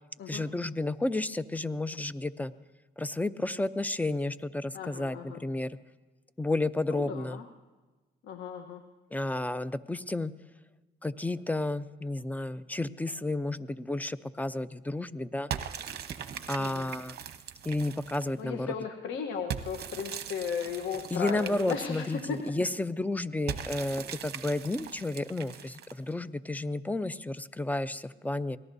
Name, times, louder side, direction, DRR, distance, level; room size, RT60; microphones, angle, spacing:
voice 1, 0.3-2.5 3.0-5.8 6.4-7.4 9.1-10.3 11.0-15.5 16.5-17.2 17.6-18.7 21.1-28.6, left 2 dB, 10° left, 15 dB, 0.5 m, -32 dB
voice 2, 4.7-5.4 6.9-7.4 8.2-8.8 16.6-16.9 18.4-22.4, left 7 dB, 75° left, 5 dB, 1.1 m, -36 dB
sound 1, 15.5-18.4 19.5-22.5 23.5-26.1, right 8 dB, 55° right, 1.0 m, -40 dB
25.0 x 18.0 x 2.7 m, 1.2 s
cardioid pair, 90°, 20 cm